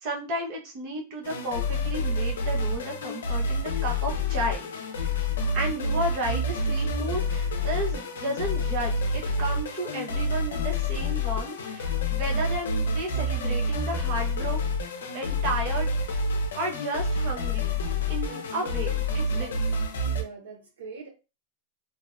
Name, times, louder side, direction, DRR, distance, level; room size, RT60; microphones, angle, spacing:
voice 1, 0.0-4.6 5.0-5.1 5.5-14.6 15.1-16.2 16.5-17.8 18.1-19.5, right 1 dB, 50° right, -1 dB, 0.8 m, -33 dB
sound 1, 1.2-20.2, left 2 dB, 85° left, 0.4 m, -28 dB
voice 2, 18.2-19.0 19.3-19.7 20.0-21.1, right 4 dB, 85° right, -1 dB, 0.8 m, -42 dB
2.6 x 2.0 x 2.4 m, 0.30 s
hypercardioid pair, 115°, 0 cm